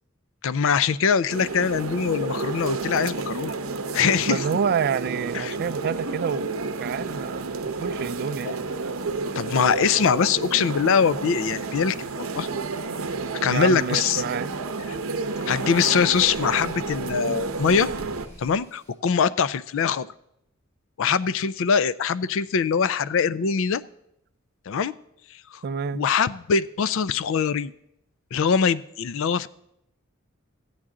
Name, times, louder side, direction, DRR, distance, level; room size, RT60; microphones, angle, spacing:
voice 1, 0.4-3.5 3.9-4.4 5.3-5.6 8.4-8.5 9.4-12.5 13.4-14.2 14.9-15.0 15.5-17.9 18.4-20.1 21.0-23.8 24.7-24.9 25.9-27.7 28.3-29.5, left 6 dB, 65° left, 0.4 m, -23 dB
sound 1, 1.3-18.3, right 3 dB, 85° right, 0.7 m, -31 dB
voice 2, 4.3-7.4 7.8-8.6 13.4-14.5 25.6-26.0, right 6 dB, 50° right, 0.3 m, -28 dB
sound 2, 13.7-18.9, right 1 dB, 15° left, 4.3 m, -50 dB
14.5 x 8.8 x 3.7 m
head